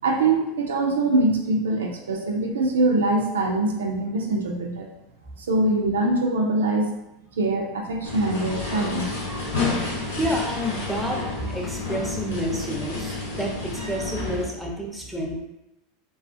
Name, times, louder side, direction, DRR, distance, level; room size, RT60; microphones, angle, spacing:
voice 1, 0.0-4.9 5.5-6.9 7.4-9.1, right 2 dB, 90° right, 1 dB, 0.4 m, -23 dB
sound 1, 8.0-14.4, left 3 dB, 85° left, 0.9 m, -30 dB
voice 2, 10.2-15.3, equal, ahead, 0 dB, 0.6 m, -29 dB
2.3 x 2.3 x 2.5 m, 0.88 s
hypercardioid pair, 100°, 0 cm